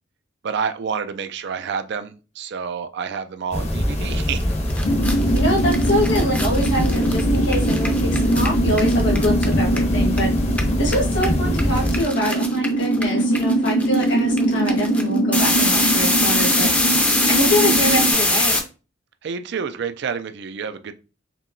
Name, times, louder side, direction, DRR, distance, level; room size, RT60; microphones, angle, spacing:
voice 1, 0.4-4.5 19.2-20.9, right 6 dB, 60° right, 0.4 m, -28 dB
sound 1, 3.5-12.0, equal, 35° left, 0.8 m, -23 dB
sound 2, 4.4-4.5 4.7-10.2 10.5-18.6, left 1 dB, 10° left, 0.6 m, -22 dB
sound 3, 4.8-18.1, right 1 dB, 85° left, 0.7 m, -23 dB
voice 2, 5.3-10.3 10.8-16.7 17.3-18.6, equal, 65° left, 1.5 m, -24 dB
4.5 x 3.0 x 2.6 m
head